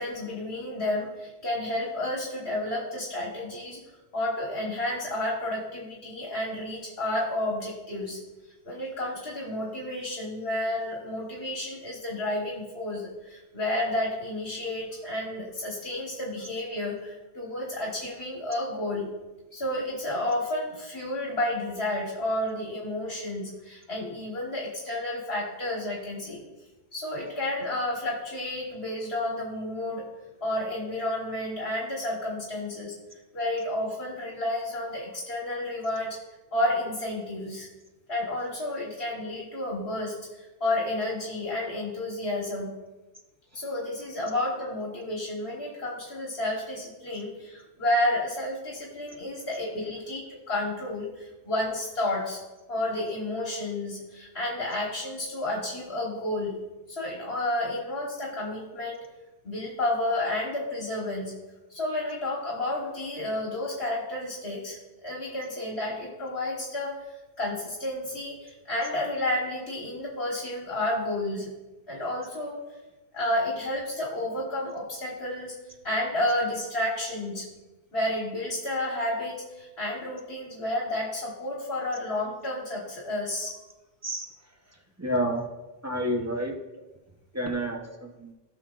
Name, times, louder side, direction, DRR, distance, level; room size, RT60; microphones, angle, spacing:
voice 1, 0.0-3.8 4.1-8.2 8.6-19.1 19.5-26.4 26.9-30.1 30.4-32.9 33.3-36.2 36.5-37.7 38.1-42.7 43.5-52.4 52.7-56.6 56.9-59.0 59.4-61.3 61.7-71.5 71.9-72.6 73.1-75.6 75.8-77.5 77.9-83.6, left 1 dB, 65° left, -2 dB, 1.7 m, -31 dB
voice 2, 84.7-85.5 85.8-86.6 87.3-88.3, equal, 15° right, 2 dB, 0.9 m, -30 dB
16.5 x 6.1 x 2.5 m, 1.1 s
omnidirectional pair, 1.1 m